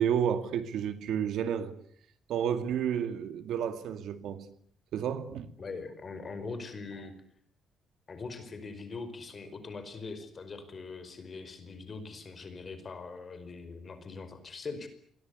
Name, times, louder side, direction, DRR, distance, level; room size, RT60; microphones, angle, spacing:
voice 1, 0.0-1.7 2.3-4.5 4.9-5.5, right 8 dB, 70° right, 2.3 m, -31 dB
voice 2, 5.6-7.1 8.1-14.9, left 4 dB, 30° left, 5.0 m, -42 dB
28.0 x 22.5 x 8.4 m
cardioid pair, 165°, 0 cm